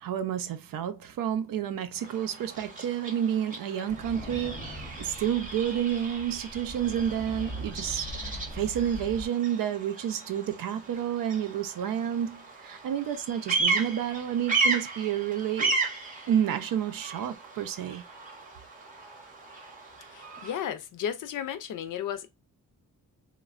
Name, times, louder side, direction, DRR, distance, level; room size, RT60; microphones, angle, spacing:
voice 1, 0.0-15.7 16.3-18.0, right 9 dB, 85° right, 0.6 m, -30 dB
Bird vocalization bird call bird song, 1.9-20.7, right 3 dB, 25° right, 0.8 m, -35 dB
sound 1, 3.9-9.3, equal, 10° left, 0.6 m, -41 dB
voice 2, 20.1-22.3, left 9 dB, 70° left, 0.5 m, -34 dB
3.1 x 2.2 x 2.4 m
wide cardioid pair, 170°, 33 cm